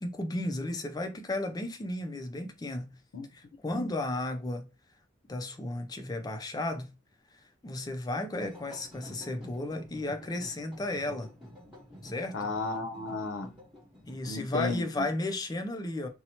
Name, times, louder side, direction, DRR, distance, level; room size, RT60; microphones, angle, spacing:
voice 1, 0.0-2.9 3.3-4.7 5.3-6.9 7.6-11.3 12.0-12.4 14.1-16.1, left 1 dB, 20° left, 0.3 m, -34 dB
sound 1, 8.3-14.6, equal, 5° right, 1.2 m, -49 dB
voice 2, 12.3-13.5 14.3-15.0, left 3 dB, 85° left, 0.5 m, -33 dB
2.7 x 2.0 x 2.8 m
head